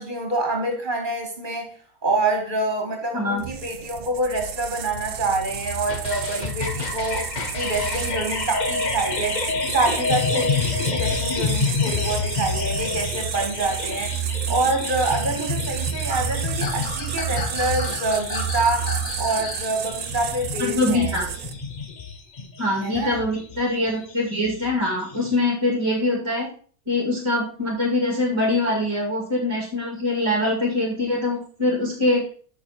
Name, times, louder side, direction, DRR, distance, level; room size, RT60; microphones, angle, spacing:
voice 1, 0.0-1.7 2.0-7.2 7.5-9.4 9.7-14.2 14.5-18.9 19.2-21.1 22.8-23.1, right 2 dB, 35° right, 2 dB, 2.2 m, -26 dB
sound 1, 3.4-21.7, right 9 dB, 85° right, 1.2 m, -31 dB
sound 2, 5.9-25.4, left 4 dB, 40° left, 0.8 m, -29 dB
voice 2, 20.6-21.3 22.6-26.5 26.9-32.3, left 2 dB, 20° right, -1 dB, 2.3 m, -23 dB
7.9 x 6.2 x 4.2 m, 0.43 s
omnidirectional pair, 1.5 m